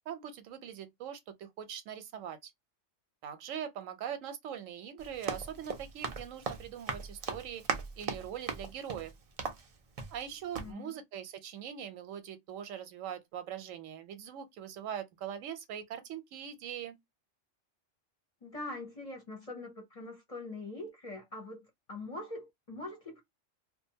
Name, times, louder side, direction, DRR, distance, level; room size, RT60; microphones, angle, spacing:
voice 1, 0.1-2.5 3.2-7.6 8.0-9.1 10.1-17.0, right 9 dB, 90° right, 1.0 m, -42 dB
Run, 5.0-10.3 10.5-10.7, right 5 dB, 60° right, 0.3 m, -38 dB
voice 2, 10.6-10.9 18.4-23.2, left 2 dB, 35° left, 0.6 m, -43 dB
2.5 x 2.1 x 2.7 m
omnidirectional pair, 1.3 m